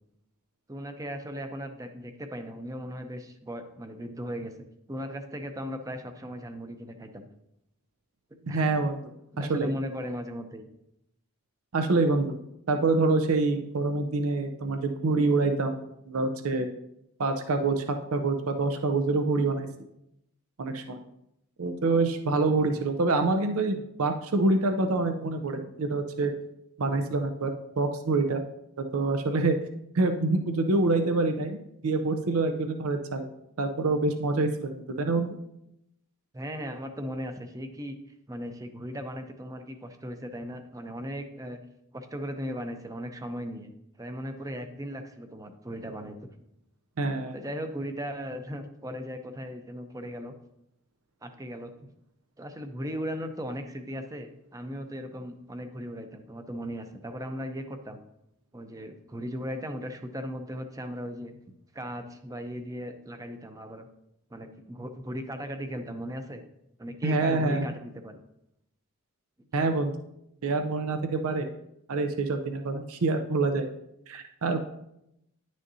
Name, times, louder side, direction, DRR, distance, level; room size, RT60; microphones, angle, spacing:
voice 1, 0.7-7.3 8.4-8.7 9.3-10.7 22.7-22.8 36.3-38.0 38.3-41.6 41.9-43.7 44.0-46.4 47.3-50.3 51.2-51.7 52.4-58.0 58.5-61.4 61.7-63.9 64.3-66.4 66.8-68.1, equal, 15° right, 7 dB, 0.6 m, -37 dB
voice 2, 8.5-9.0 9.4-9.7 11.7-12.4 12.7-16.7 17.2-17.8 18.1-19.7 20.6-21.0 21.6-26.3 26.8-28.4 28.9-29.6 29.9-33.3 33.6-35.4 47.0-47.4 67.0-67.6 69.5-69.9 70.4-71.5 71.9-73.6 74.1-74.6, right 3 dB, 75° right, 6 dB, 0.6 m, -26 dB
10.5 x 6.3 x 2.7 m, 0.82 s
head